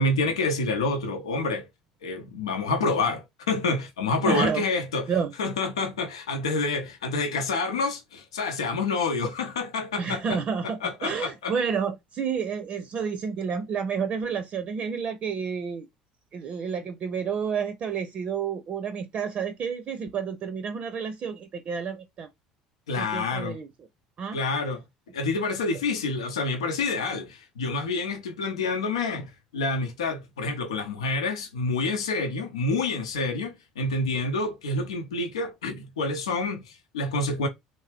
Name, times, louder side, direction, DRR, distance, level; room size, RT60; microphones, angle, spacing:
voice 1, 0.0-1.7 2.0-5.1 5.4-10.4 10.6-11.5 22.9-23.6 24.3-24.8 25.1-37.5, left 3 dB, 85° left, 0.7 m, -28 dB
voice 2, 4.2-4.6 5.1-5.3 10.0-15.9 16.3-22.3 23.0-23.7 24.2-24.4, right 6 dB, 45° right, 0.6 m, -30 dB
3.2 x 2.7 x 3.3 m
hypercardioid pair, 65°, 3 cm